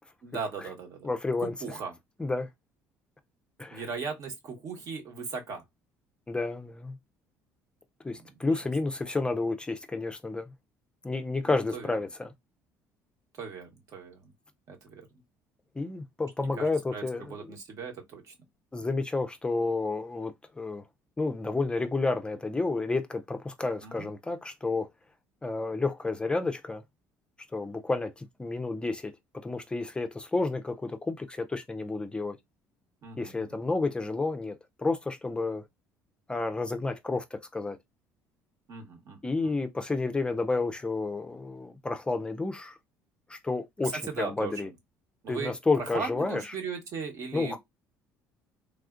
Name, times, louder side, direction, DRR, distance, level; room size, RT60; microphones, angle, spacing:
voice 1, 0.2-1.1 1.4-1.9 3.7-5.6 8.2-8.3 11.5-12.0 13.4-14.3 14.7-15.0 16.4-18.4 23.8-24.1 33.0-33.6 38.7-39.5 43.8-44.7 45.2-45.5 45.8-47.6, right 5 dB, 55° right, 1.1 m, -38 dB
voice 2, 1.0-1.8 2.2-2.5 3.6-3.9 6.3-7.0 8.0-10.5 11.0-12.3 15.8-17.5 18.7-20.8 21.2-24.9 25.4-26.8 27.5-32.4 33.2-35.6 36.3-37.8 39.2-42.8 43.3-44.7 45.3-46.5 47.3-47.6, left 3 dB, 15° left, 0.4 m, -31 dB
3.4 x 2.4 x 2.4 m
supercardioid pair, 80°, 6 cm